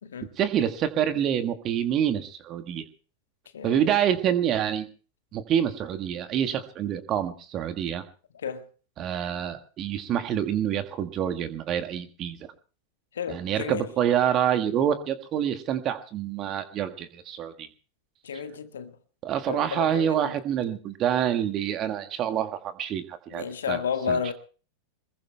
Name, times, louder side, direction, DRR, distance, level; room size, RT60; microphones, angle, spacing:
voice 1, 0.4-2.9 3.6-4.9 5.3-8.0 9.0-12.5 13.3-17.7 18.3-18.4 19.2-23.8 24.1-24.3, right 9 dB, 35° right, 1.6 m, -27 dB
voice 2, 3.5-3.9 8.4-8.6 13.1-13.9 18.2-18.9 19.5-20.3 23.3-24.3, left 7 dB, 65° left, 1.6 m, -31 dB
26.0 x 21.0 x 2.3 m
figure-of-eight pair, 90°, 0 cm